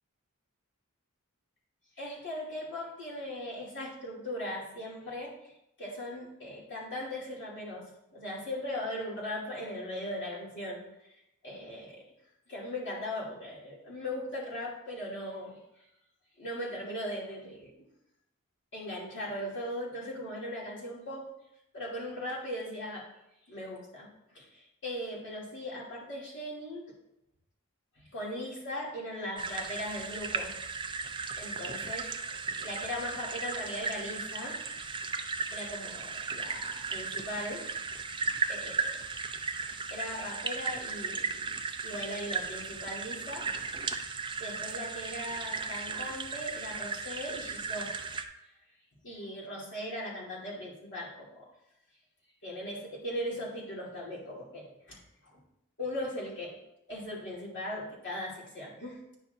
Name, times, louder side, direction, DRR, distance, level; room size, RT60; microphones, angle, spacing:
voice 1, 2.0-5.3 5.8-7.8 8.1-12.0 12.5-15.6 16.4-17.7 18.7-21.3 21.7-23.1 23.5-26.9 27.9-30.5 31.3-32.1 32.6-34.6 35.5-37.7 38.2-39.0 39.3-39.5 39.9-41.6 41.8-43.5 44.4-47.9 49.0-51.5 52.4-55.4 55.8-56.6 56.9-59.0, left 1 dB, 55° left, -6 dB, 2.8 m, -39 dB
sound 1, 29.4-48.2, right 4 dB, 20° right, 0.5 m, -36 dB
10.0 x 5.8 x 2.7 m, 0.83 s
head